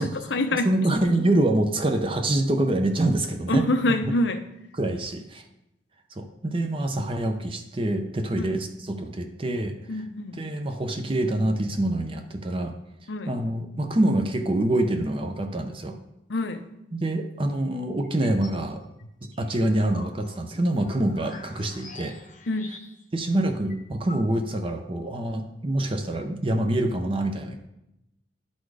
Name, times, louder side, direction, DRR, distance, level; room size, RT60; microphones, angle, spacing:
voice 1, 0.0-0.7 3.5-4.4 8.3-8.6 9.9-10.5 13.1-13.4 16.3-16.6 22.5-22.7, left 2 dB, 70° left, 8 dB, 0.7 m, -26 dB
voice 2, 0.5-3.6 4.7-5.4 6.1-9.8 10.4-12.7 13.3-16.0 16.9-18.8 19.4-22.1 23.1-27.6, right 1 dB, 30° right, 5 dB, 0.6 m, -25 dB
sound 1, 18.0-18.6 19.0-23.2 23.4-23.5 23.7-24.7, left 4 dB, 40° left, 0.9 m, -46 dB
11.0 x 4.2 x 4.8 m, 0.88 s
head